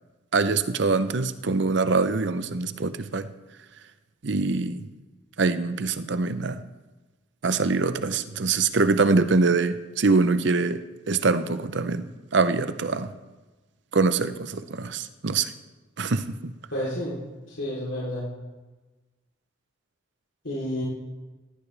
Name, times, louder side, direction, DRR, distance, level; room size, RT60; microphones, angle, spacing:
voice 1, 0.3-3.3 4.2-4.9 5.4-6.6 7.4-10.8 11.1-13.1 13.9-15.5 16.0-16.5, right 4 dB, 65° right, 12 dB, 0.7 m, -24 dB
voice 2, 16.7-17.2 17.5-18.3 20.4-20.8, left 1 dB, 90° left, -7 dB, 3.4 m, -30 dB
18.0 x 14.5 x 3.4 m, 1.2 s
head